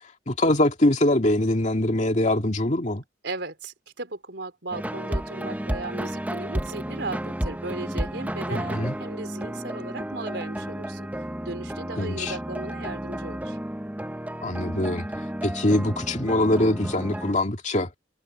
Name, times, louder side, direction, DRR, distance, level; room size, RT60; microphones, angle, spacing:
voice 1, 0.3-3.0 8.5-9.0 12.0-12.3 14.4-15.1 15.4-17.9, left 1 dB, 45° left, 2.2 m, -23 dB
voice 2, 3.2-11.1 11.4-13.6, right 2 dB, 75° right, 4.3 m, -36 dB
sound 1, 4.7-17.3, right 1 dB, 10° right, 1.0 m, -32 dB
head